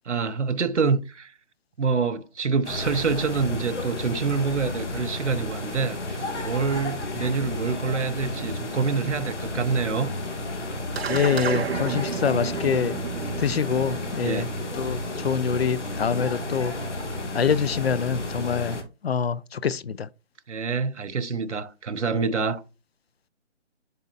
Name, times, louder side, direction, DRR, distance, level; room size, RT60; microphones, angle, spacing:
voice 1, 0.0-1.3 1.8-10.1 14.2-14.5 20.5-22.6, right 5 dB, 75° right, 1.2 m, -26 dB
sound 1, 2.6-18.8, left 2 dB, 75° left, 2.1 m, -32 dB
sound 2, 11.0-15.6, right 7 dB, 60° right, 0.6 m, -32 dB
voice 2, 11.1-13.0 13.4-14.5 14.8-16.7 17.3-18.8 19.0-20.1, left 6 dB, 60° left, 0.6 m, -25 dB
11.0 x 4.1 x 2.6 m
hypercardioid pair, 165°, 35 cm